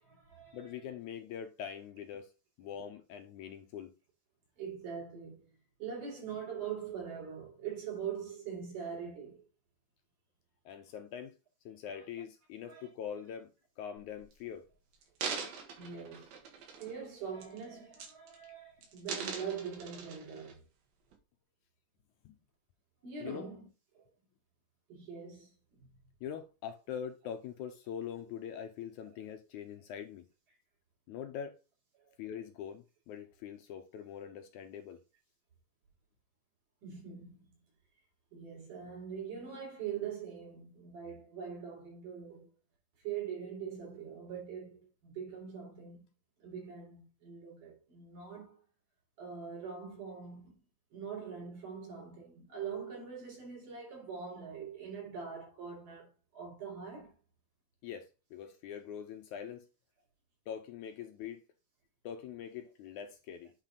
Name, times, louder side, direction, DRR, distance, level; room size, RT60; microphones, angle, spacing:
voice 1, 0.0-0.7 4.6-5.5 5.8-9.4 12.7-12.9 15.8-16.3 16.8-20.6 23.0-23.7 23.9-24.0 24.9-25.9 32.1-32.2 36.8-37.5 38.3-42.5 43.0-46.1 46.4-48.6 49.2-50.5 50.9-57.1, right 7 dB, 70° right, 5.2 m, -43 dB
voice 2, 0.5-2.3 2.6-3.9 10.7-11.3 11.7-13.5 13.8-14.7 22.3-22.4 23.2-23.5 26.2-30.2 31.1-31.6 32.2-35.0 57.8-59.7 60.5-61.4 62.0-63.5, left 8 dB, 75° left, 2.0 m, -43 dB
sound 1, 14.0-14.3 14.9-17.0 17.4-17.6 17.9-18.5 18.8-20.5 21.1-21.2, right 5 dB, 85° right, 3.4 m, -42 dB
9.0 x 4.2 x 4.0 m
omnidirectional pair, 3.9 m